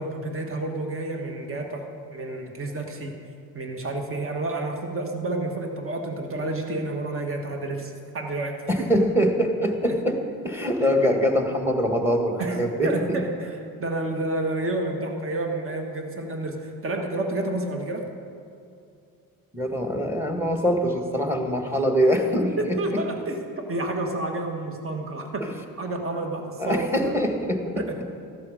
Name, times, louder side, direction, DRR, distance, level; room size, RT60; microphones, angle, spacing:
voice 1, 0.0-3.1 3.5-8.9 9.8-10.0 12.4-18.1 22.6-25.5 25.8-27.1 27.8-28.0, right 2 dB, 35° right, 3 dB, 1.5 m, -30 dB
voice 2, 8.7-10.2 10.4-12.9 19.5-23.0 25.4-25.5 26.6-27.9, equal, 5° right, 4 dB, 1.6 m, -23 dB
14.5 x 12.0 x 5.0 m, 2.5 s
cardioid pair, 110°, 36 cm